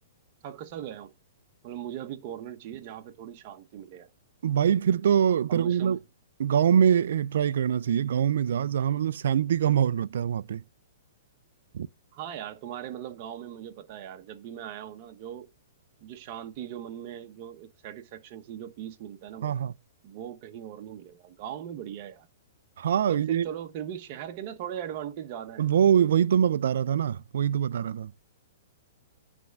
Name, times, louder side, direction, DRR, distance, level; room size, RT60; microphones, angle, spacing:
voice 1, 0.4-1.1 1.6-4.1 5.5-6.0 12.1-15.5 16.0-19.6 20.0-22.3 23.1-25.7, right 10 dB, 45° right, 1.1 m, -39 dB
voice 2, 4.4-6.0 6.4-10.6 11.7-11.9 19.4-19.7 22.8-23.5 25.6-28.1, right 9 dB, 75° right, 0.4 m, -24 dB
9.2 x 3.5 x 6.6 m
hypercardioid pair, 140°, 0 cm